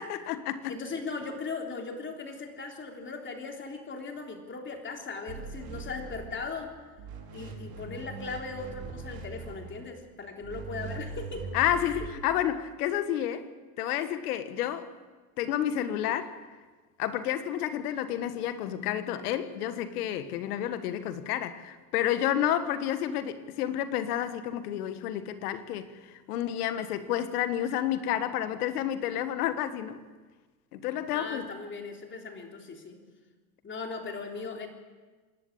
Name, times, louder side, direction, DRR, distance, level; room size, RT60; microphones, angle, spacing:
voice 1, 0.0-0.7 11.5-13.4 13.8-14.9 15.4-16.4 17.0-30.0 30.7-31.5, left 11 dB, 80° left, 11 dB, 1.6 m, -30 dB
voice 2, 0.7-6.8 7.3-12.1 31.1-33.0 33.6-34.7, left 4 dB, 25° left, 3 dB, 3.5 m, -38 dB
sound 1, 5.3-6.7 7.0-9.9 10.4-12.1, right 4 dB, 55° right, 5.4 m, -41 dB
26.5 x 11.5 x 8.7 m, 1.3 s
supercardioid pair, 110°, 44 cm